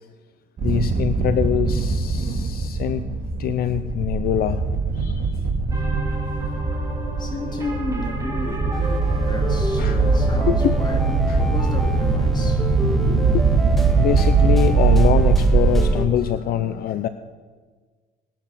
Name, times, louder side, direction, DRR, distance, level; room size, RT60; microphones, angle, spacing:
voice 1, 0.6-3.0 3.4-4.6 4.9-5.4 8.8-9.0 9.8-10.0 10.5-10.8 11.3-11.4 13.9-17.1, left 10 dB, 60° left, 0.7 m, -24 dB
sound 1, 0.6-15.9, right 4 dB, 50° right, 2.6 m, -21 dB
sound 2, 5.7-11.2, right 1 dB, 20° right, 2.9 m, -33 dB
voice 2, 7.2-8.9 9.2-13.3, left 2 dB, 25° left, 3.1 m, -33 dB
sound 3, 8.7-16.1, equal, ahead, 1.7 m, -30 dB
19.5 x 12.0 x 5.8 m
cardioid pair, 110°, 17 cm